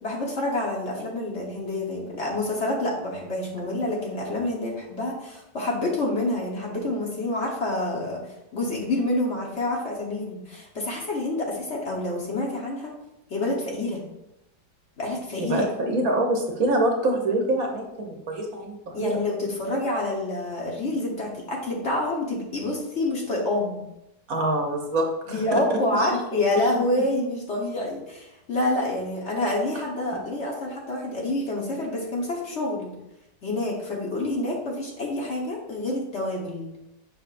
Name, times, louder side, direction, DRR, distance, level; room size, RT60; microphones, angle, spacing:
voice 1, 0.0-8.2 8.5-12.9 13.3-14.0 15.0-16.0 18.9-23.8 25.3-32.9 33.4-36.7, left 2 dB, 45° left, -2 dB, 1.3 m, -27 dB
voice 2, 15.4-19.2 24.3-26.2, right 1 dB, 60° right, 2 dB, 1.3 m, -25 dB
6.9 x 5.8 x 2.5 m, 0.88 s
omnidirectional pair, 1.9 m